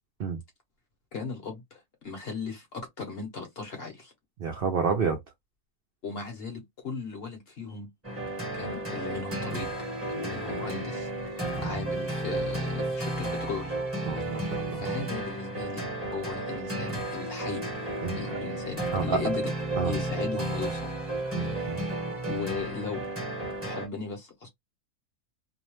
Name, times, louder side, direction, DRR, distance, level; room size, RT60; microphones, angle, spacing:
voice 1, 1.1-4.1 6.0-7.9 8.5-11.1 11.6-13.8 14.7-17.7 18.1-19.5 19.8-21.0 22.3-23.1 23.6-24.5, left 4 dB, 50° left, 0.8 m, -37 dB
voice 2, 4.4-5.2 11.6-11.8 14.1-14.8 18.0-18.2 18.9-19.2 19.8-19.9 21.3-21.8, right 5 dB, 70° right, 0.5 m, -29 dB
sound 1, 8.0-23.9, right 2 dB, 10° right, 0.7 m, -33 dB
2.7 x 2.0 x 2.9 m
omnidirectional pair, 1.6 m